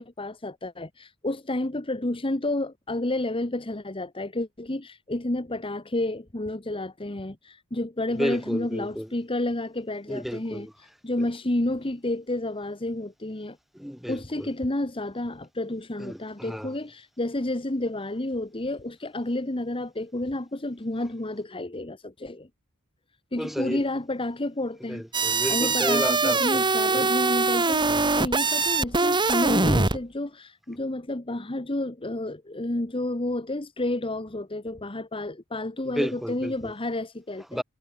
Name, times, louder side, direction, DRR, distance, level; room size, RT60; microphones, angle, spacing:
voice 1, 0.0-13.6 14.1-22.5 23.3-25.0 25.5-27.9 28.2-37.4, left 1 dB, 25° left, 1.3 m, -30 dB
voice 2, 8.2-9.1 10.1-10.7 13.7-14.5 16.0-16.7 23.4-23.8 24.9-27.1 27.9-28.0 35.9-36.7 37.5-37.6, equal, ahead, 2.8 m, -32 dB
sound 1, 25.1-30.0, right 3 dB, 20° right, 1.7 m, -23 dB
head